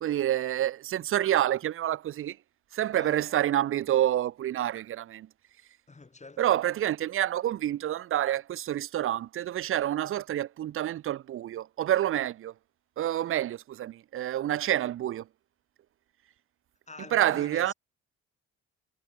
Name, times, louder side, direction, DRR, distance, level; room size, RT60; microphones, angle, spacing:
voice 1, 0.0-2.4 2.7-5.3 6.4-12.5 13.0-15.2 17.1-17.7, right 12 dB, 45° right, 0.4 m, -28 dB
voice 2, 2.9-3.3 5.9-6.5 16.9-17.7, left 3 dB, 25° left, 2.8 m, -46 dB
cardioid pair, 90°, 30 cm